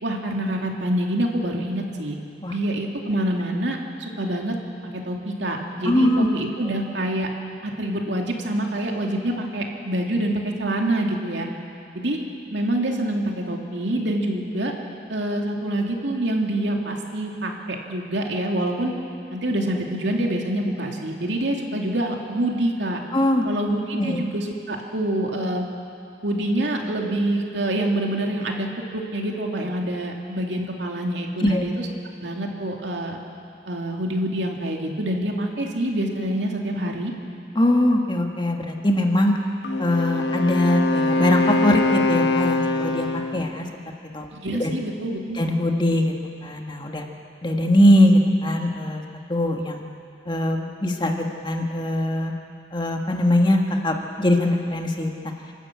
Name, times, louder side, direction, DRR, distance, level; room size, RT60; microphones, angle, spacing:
voice 1, 0.0-2.2 2.5-4.5 5.1-7.3 7.6-11.5 11.9-12.2 12.5-14.7 15.1-18.9 19.3-23.0 23.4-25.7 26.2-28.7 28.9-31.9 32.2-33.2 33.7-37.1 44.4-45.4, right 1 dB, 85° right, 1 dB, 2.5 m, -26 dB
voice 2, 5.8-6.3 23.1-23.4 24.0-24.2 31.4-31.6 37.5-39.3 39.8-43.6 44.1-44.3 44.6-44.7 45.4-46.1 46.4-47.0 47.4-49.0 49.3-49.8 50.3-52.3 52.7-55.1, left 1 dB, 25° left, 2 dB, 1.6 m, -21 dB
Wind instrument woodwind instrument, 39.6-43.5, left 2 dB, 70° left, 1.3 m, -23 dB
27.5 x 12.5 x 8.4 m, 2.5 s
head